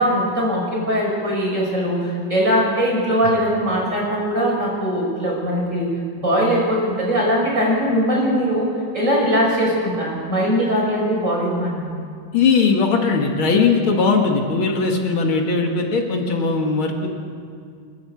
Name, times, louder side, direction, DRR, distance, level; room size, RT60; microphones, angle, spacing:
voice 1, 0.0-5.9 6.2-12.0, equal, 35° right, -3 dB, 6.9 m, -20 dB
voice 2, 12.3-17.2, left 4 dB, 90° left, 1 dB, 2.8 m, -19 dB
29.5 x 12.5 x 8.1 m, 2.3 s
omnidirectional pair, 2.2 m